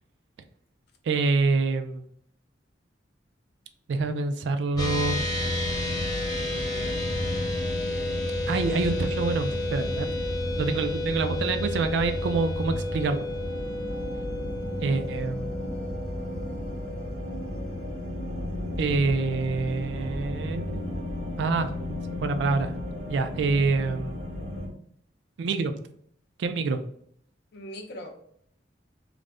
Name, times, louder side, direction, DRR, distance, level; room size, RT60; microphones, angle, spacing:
voice 1, 1.1-2.0 3.9-5.2 8.5-10.1 10.6-13.3 14.8-15.5 18.8-20.8 21.4-21.7 22.2-22.7 23.1-24.1 25.4-25.7 26.4-26.8, right 3 dB, 70° right, 8 dB, 0.3 m, -26 dB
sound 1, 4.7-24.7, left 1 dB, 85° right, 1.0 m, -33 dB
sound 2, 4.8-18.4, left 2 dB, 20° left, 0.6 m, -33 dB
voice 2, 6.5-7.0 27.5-28.2, equal, 65° left, 3 dB, 0.5 m, -41 dB
2.4 x 2.1 x 3.3 m, 0.65 s
head